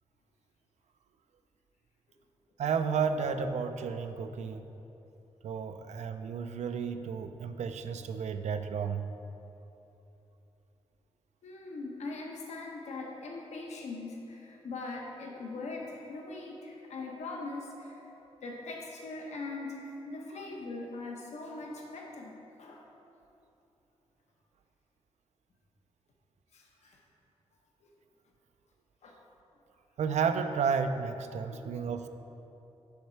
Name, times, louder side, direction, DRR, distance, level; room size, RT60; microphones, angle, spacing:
voice 1, 2.6-4.6 5.4-9.0 30.0-32.1, right 6 dB, 85° right, 9 dB, 0.4 m, -32 dB
voice 2, 11.4-22.8 26.5-27.0 27.8-27.9 29.0-29.2 31.5-31.6, left 3 dB, 85° left, -1 dB, 0.9 m, -41 dB
6.5 x 6.5 x 4.4 m, 2.9 s
wide cardioid pair, 140°, 11 cm